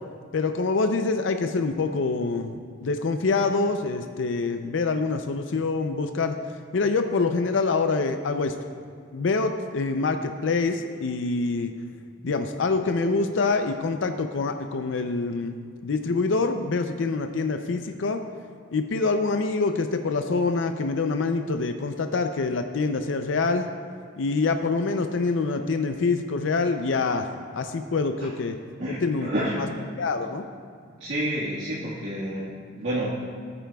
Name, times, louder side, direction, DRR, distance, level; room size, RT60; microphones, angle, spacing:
voice 1, 0.3-6.4 6.7-8.6 9.1-11.7 12.2-18.2 18.7-23.7 24.2-28.6 28.9-29.7 30.0-30.4, left 3 dB, 70° left, 6 dB, 0.5 m, -25 dB
voice 2, 28.8-29.6 31.0-33.2, right 1 dB, 75° right, -8 dB, 1.7 m, -29 dB
19.0 x 8.9 x 2.3 m, 2.2 s
head